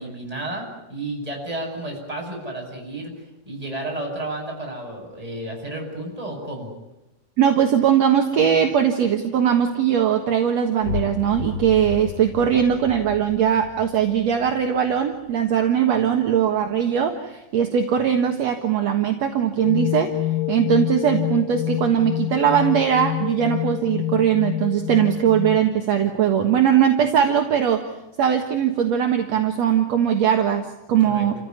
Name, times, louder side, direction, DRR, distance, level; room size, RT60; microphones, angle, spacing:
voice 1, 0.0-3.1 3.5-6.7 31.0-31.3, right 1 dB, 10° right, 0 dB, 8.0 m, -32 dB
voice 2, 7.4-20.1 20.5-27.9 28.2-31.3, right 9 dB, 60° right, 4 dB, 2.5 m, -20 dB
sound 1, 10.8-16.3, left 6 dB, 90° left, 4.8 m, -34 dB
sound 2, 19.6-25.6, left 14 dB, 70° left, 2.3 m, -27 dB
29.0 x 16.0 x 9.8 m, 0.97 s
omnidirectional pair, 3.6 m